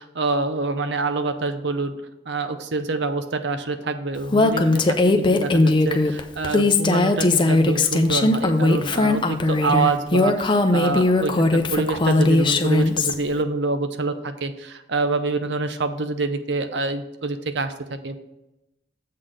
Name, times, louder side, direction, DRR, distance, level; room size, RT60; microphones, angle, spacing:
voice 1, 0.0-1.9 2.3-18.2, right 3 dB, 70° right, 9 dB, 0.7 m, -26 dB
Female speech woman speaking, 4.3-13.1, left 2 dB, 25° left, 0.5 m, -19 dB
7.5 x 4.1 x 6.4 m, 0.92 s
head